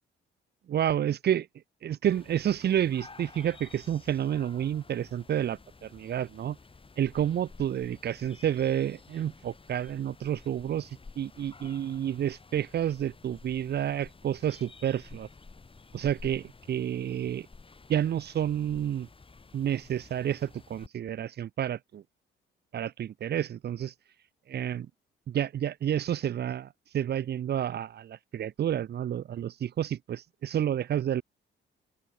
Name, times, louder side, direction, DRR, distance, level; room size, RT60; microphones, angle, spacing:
voice 1, 0.7-1.5 1.8-6.6 7.0-10.9 11.2-15.3 15.9-17.5 17.9-19.1 19.5-22.0 22.7-23.9 24.5-24.9 25.3-26.7 26.9-31.2, right 10 dB, 55° right, 0.9 m, -30 dB
sound 1, 2.0-20.9, left 4 dB, 25° left, 7.2 m, -52 dB
open air
cardioid pair, 90°, 20 cm